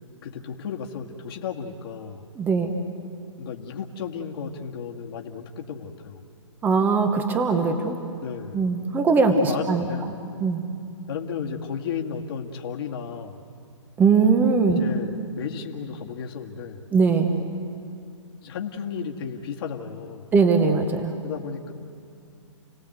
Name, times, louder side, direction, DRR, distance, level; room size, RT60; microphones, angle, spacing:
voice 1, 0.2-2.3 3.4-6.2 8.2-8.6 9.3-10.1 11.1-13.4 14.8-16.9 18.4-20.3 21.2-21.7, left 7 dB, 50° left, 1 dB, 2.1 m, -33 dB
voice 2, 2.3-2.7 6.6-8.0 8.5-9.9 10.4-10.6 14.0-14.8 16.9-17.3 20.3-21.1, right 4 dB, 10° right, 6 dB, 1.2 m, -20 dB
30.0 x 18.0 x 8.0 m, 2.5 s
hypercardioid pair, 150°, 16 cm